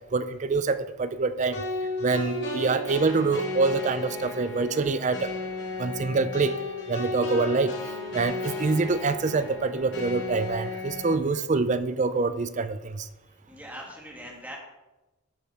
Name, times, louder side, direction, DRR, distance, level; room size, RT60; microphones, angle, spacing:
voice 1, 0.1-1.6 2.0-5.3 5.8-6.6 6.9-7.8 8.1-13.1, right 4 dB, 35° right, 12 dB, 0.4 m, -25 dB
sound 1, 1.5-11.1, left 2 dB, 55° left, 2.7 m, -34 dB
voice 2, 13.3-14.6, equal, 10° right, -2 dB, 2.1 m, -42 dB
12.0 x 6.6 x 4.5 m, 1.0 s
head